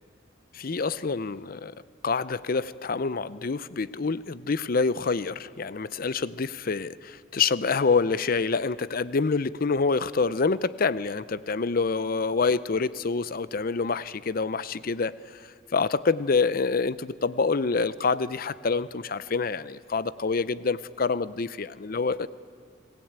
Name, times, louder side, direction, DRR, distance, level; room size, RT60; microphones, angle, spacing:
voice 1, 0.5-1.7 2.0-15.1 15.4-22.3, left 4 dB, 50° left, 17 dB, 0.6 m, -27 dB
26.0 x 19.0 x 8.8 m, 2.1 s
head